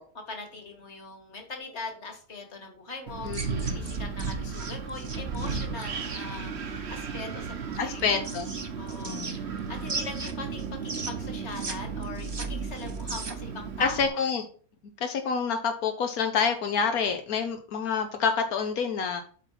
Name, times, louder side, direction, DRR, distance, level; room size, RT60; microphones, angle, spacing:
voice 1, 0.1-8.3 8.8-14.2, left 3 dB, 50° left, 5 dB, 2.0 m, -41 dB
Wind, 3.1-14.1, right 5 dB, 50° right, 1.1 m, -35 dB
voice 2, 3.2-3.9 6.3-6.5 7.8-8.5 9.0-9.4 13.8-14.5 15.0-19.2, left 6 dB, 85° left, 5 dB, 1.4 m, -28 dB
sound 1, 3.3-6.3 7.7-9.6 9.9-11.7 12.0-13.5, right 3 dB, 25° right, 0.6 m, -38 dB
8.1 x 4.2 x 5.8 m, 0.43 s
omnidirectional pair, 1.5 m